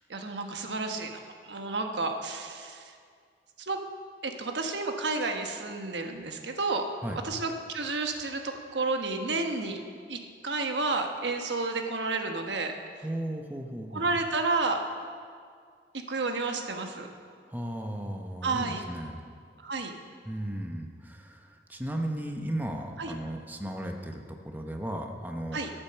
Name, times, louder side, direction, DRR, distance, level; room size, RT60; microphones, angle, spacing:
voice 1, 0.1-2.9 3.7-3.8 4.2-6.8 7.2-9.8 10.1-12.7 13.9-14.8 16.1-17.1 18.4-18.8 19.6-19.9 23.0-23.1 25.5-25.7, right 3 dB, 90° right, 4 dB, 1.2 m, -31 dB
voice 2, 13.0-14.1 17.5-19.2 20.2-25.6, right 1 dB, 10° right, 3 dB, 0.8 m, -35 dB
13.0 x 8.8 x 6.8 m, 2.1 s
head